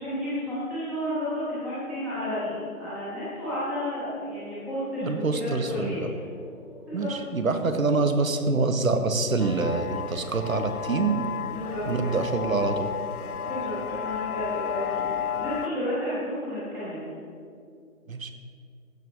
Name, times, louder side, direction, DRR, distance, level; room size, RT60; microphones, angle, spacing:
voice 1, 0.0-6.0 6.9-7.1 11.5-12.2 13.3-17.1, left 1 dB, ahead, -10 dB, 0.8 m, -32 dB
sound 1, 1.7-16.5, left 1 dB, 35° left, 1.0 m, -47 dB
voice 2, 5.0-6.1 6.9-11.2 11.9-12.9 18.1-18.3, right 3 dB, 65° right, 8 dB, 1.2 m, -26 dB
sound 2, 9.4-15.7, left 9 dB, 80° left, 0.6 m, -33 dB
15.0 x 5.6 x 4.9 m, 2.3 s
figure-of-eight pair, 145°, 43 cm